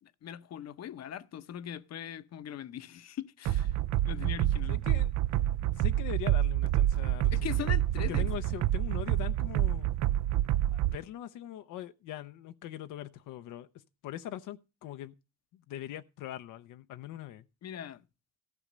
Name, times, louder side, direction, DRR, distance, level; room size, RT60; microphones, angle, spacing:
voice 1, 0.0-3.8 4.0-4.8 7.3-8.3 17.6-18.1, left 10 dB, 60° left, 0.8 m, -40 dB
sound 1, 3.4-11.0, right 13 dB, 70° right, 0.5 m, -28 dB
voice 2, 4.7-5.1 5.6-7.7 8.0-9.9 10.7-13.7 14.0-15.1 15.5-17.4, left 12 dB, 90° left, 0.7 m, -42 dB
14.5 x 5.0 x 6.6 m
cardioid pair, 90°, 30 cm